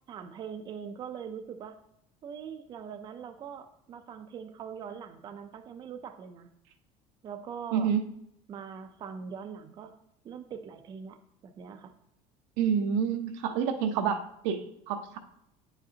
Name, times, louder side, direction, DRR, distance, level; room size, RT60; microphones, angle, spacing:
voice 1, 0.1-1.8 2.2-6.5 7.2-7.9 8.5-10.0 10.2-11.2 11.4-11.9, right 7 dB, 30° right, 6 dB, 0.5 m, -42 dB
voice 2, 7.7-8.1 12.6-15.2, right 7 dB, 85° right, 5 dB, 0.8 m, -28 dB
9.4 x 4.9 x 2.8 m, 0.76 s
cardioid pair, 155°, 15 cm